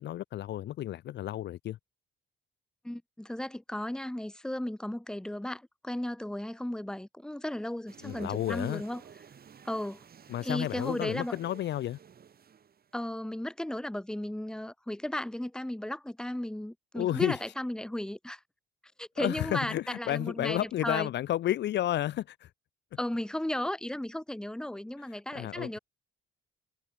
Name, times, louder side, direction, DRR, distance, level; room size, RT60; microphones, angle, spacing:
voice 1, 0.0-1.8 8.0-8.8 10.3-12.0 16.9-17.4 19.2-22.5 25.3-25.8, left 13 dB, 60° left, 0.5 m, -31 dB
voice 2, 2.8-9.0 9.6-10.0 10.4-11.4 12.9-18.4 19.0-21.1 23.0-25.8, left 1 dB, 5° left, 1.0 m, -35 dB
sound 1, 7.9-13.0, right 7 dB, 50° right, 4.0 m, -53 dB
cardioid pair, 90°, 20 cm